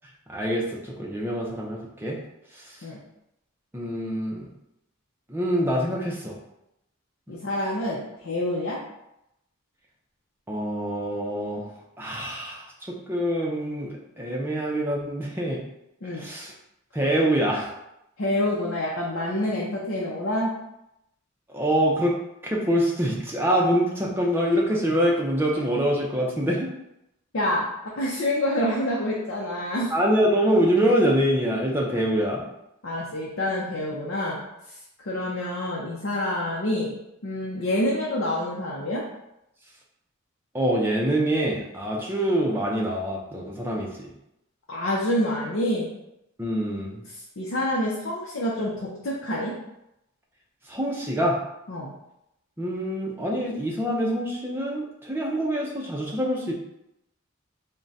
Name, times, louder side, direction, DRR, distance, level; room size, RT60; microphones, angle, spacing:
voice 1, 0.3-2.2 2.5-2.8 3.7-4.5 5.3-6.4 10.5-15.6 16.1-16.5 16.9-17.7 21.5-22.2 22.4-26.7 29.9-32.5 40.5-44.1 46.4-47.0 50.7-51.4 52.6-56.5, equal, 10° right, -2 dB, 0.5 m, -25 dB
voice 2, 7.3-8.8 16.0-16.3 18.2-20.5 27.3-27.7 28.0-29.9 32.8-34.4 35.1-37.0 37.2-39.0 44.7-45.9 47.4-49.5 51.7-51.9, left 1 dB, 65° left, -4 dB, 0.6 m, -27 dB
3.6 x 2.2 x 4.0 m, 0.85 s
head